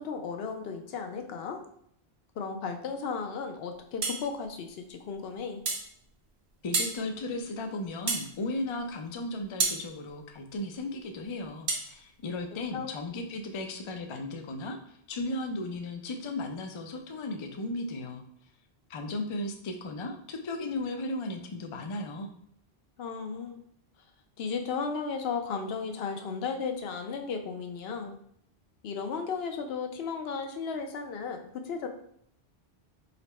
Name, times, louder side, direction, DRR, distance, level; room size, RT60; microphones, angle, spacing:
voice 1, 0.0-1.6 2.4-5.6 12.7-12.9 23.0-23.6 24.4-28.2 28.8-31.9, left 5 dB, 75° left, 5 dB, 0.8 m, -35 dB
sound 1, 4.0-4.2 5.7-5.9 6.7-7.0 8.1-8.3 9.6-9.8 11.7-11.9, right 4 dB, 85° right, 1.0 m, -28 dB
voice 2, 6.6-18.2 18.9-22.3, left 2 dB, 50° left, 3 dB, 0.3 m, -35 dB
4.0 x 2.1 x 4.1 m, 0.68 s
omnidirectional pair, 1.1 m